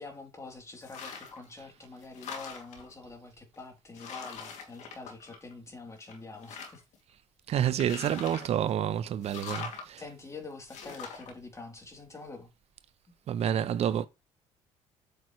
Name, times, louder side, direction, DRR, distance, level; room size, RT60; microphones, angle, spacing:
voice 1, 0.0-6.8 10.0-12.5, left 3 dB, 25° left, 3.2 m, -46 dB
sound 1, 0.8-1.5 1.8-2.9 3.5-3.6 3.9-5.7 6.0-7.0 7.6-8.6 9.2-9.9 10.7-11.3, left 6 dB, 70° left, 2.5 m, -42 dB
voice 2, 7.5-10.0 13.3-14.1, right 10 dB, 55° right, 0.7 m, -29 dB
8.5 x 6.6 x 3.2 m
supercardioid pair, 80°, 13 cm